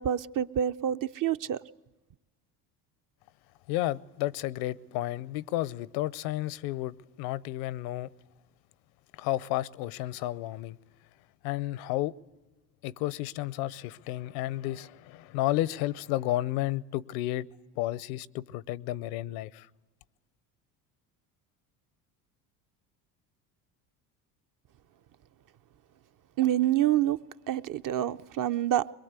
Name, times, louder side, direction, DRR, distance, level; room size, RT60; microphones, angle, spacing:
voice 1, 0.0-1.6 26.4-27.2 27.5-28.9, right 11 dB, 45° right, 0.7 m, -27 dB
voice 2, 3.7-8.1 9.2-10.8 11.4-12.1 12.8-17.5 17.8-19.7, left 15 dB, 70° left, 0.7 m, -32 dB
22.0 x 22.0 x 8.2 m
hypercardioid pair, 70°, 47 cm